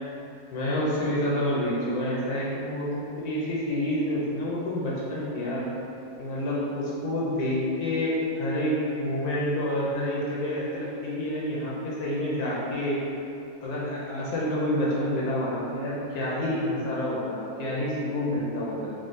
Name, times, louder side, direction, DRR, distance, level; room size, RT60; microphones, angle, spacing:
voice 1, 0.5-5.7 6.2-13.0 13.6-18.9, left 1 dB, 80° left, -6 dB, 1.1 m, -28 dB
3.6 x 2.1 x 2.5 m, 2.7 s
omnidirectional pair, 1.6 m